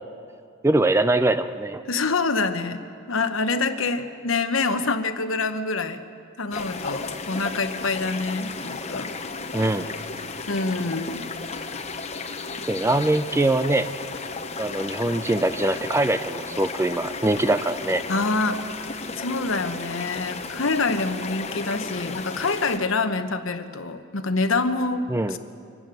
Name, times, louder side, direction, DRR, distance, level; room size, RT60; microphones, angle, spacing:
voice 1, 0.6-1.8 9.5-9.9 12.7-13.9 14.6-18.0 25.1-25.4, right 2 dB, 10° right, 11 dB, 0.4 m, -22 dB
voice 2, 1.9-6.0 6.4-9.1 10.5-11.3 18.1-18.6 19.2-25.4, left 3 dB, 70° left, 9 dB, 1.0 m, -26 dB
sound 1, 6.5-22.8, left 4 dB, 30° left, 0.9 m, -34 dB
sound 2, 11.6-11.8 12.9-13.1 14.1-14.3 15.4-15.8 16.8-17.2 18.2-18.5, left 3 dB, 55° left, 1.7 m, -48 dB
25.0 x 12.0 x 9.1 m, 2.4 s
head